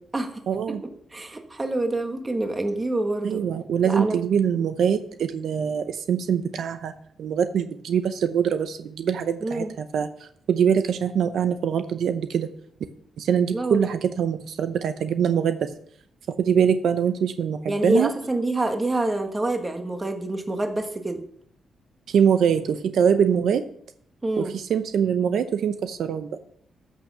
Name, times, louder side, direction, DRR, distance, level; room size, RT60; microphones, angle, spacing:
voice 1, 0.5-0.8 3.2-6.9 7.2-12.5 13.2-15.7 16.4-18.1 22.1-23.6 24.4-26.3, right 7 dB, 65° right, 9 dB, 0.7 m, -23 dB
voice 2, 1.1-3.4 3.8-4.2 9.4-9.7 13.5-13.9 17.7-21.2 24.2-24.5, right 2 dB, 15° right, 5 dB, 1.3 m, -26 dB
13.5 x 6.4 x 6.1 m, 0.67 s
wide cardioid pair, 160°, 0 cm